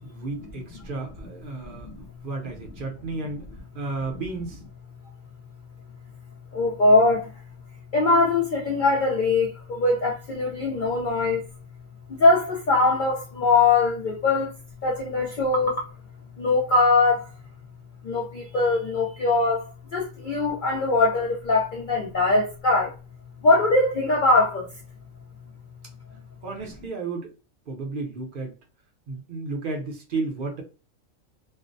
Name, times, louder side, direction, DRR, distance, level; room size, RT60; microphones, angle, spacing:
voice 1, 0.0-1.9 2.2-3.4 3.7-4.6 26.4-27.3 27.7-28.5 29.1-30.6, right 3 dB, 50° right, 0.7 m, -32 dB
voice 2, 6.5-7.3 7.9-11.5 12.2-14.5 14.8-15.9 16.4-17.3 18.0-22.9 23.4-24.7, left 3 dB, 65° left, 0.5 m, -21 dB
2.5 x 2.0 x 2.5 m
omnidirectional pair, 1.4 m